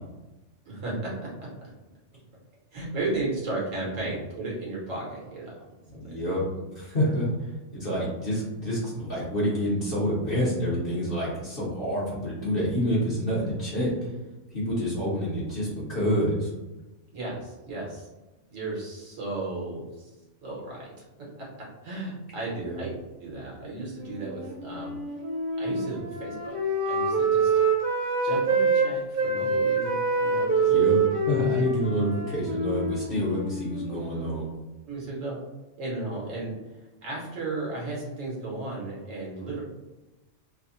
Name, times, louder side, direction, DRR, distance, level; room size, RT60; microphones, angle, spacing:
voice 1, 0.6-1.3 2.7-5.5 17.1-18.1 18.5-20.1 20.4-20.9 21.4-21.5 21.8-22.9 23.2-24.9 25.6-26.6 26.8-27.5 28.2-30.7 34.9-35.4 35.8-39.6, right 2 dB, 85° right, -4 dB, 1.4 m, -34 dB
voice 2, 5.9-6.4 6.7-7.3 7.7-13.9 14.5-16.5 22.6-22.8 30.7-31.0 31.3-34.5, equal, 50° left, -8 dB, 0.9 m, -27 dB
Wind instrument woodwind instrument, 24.0-28.9 29.1-34.5, right 4 dB, 55° right, 0.8 m, -26 dB
3.2 x 2.0 x 2.5 m, 1.1 s
omnidirectional pair, 1.3 m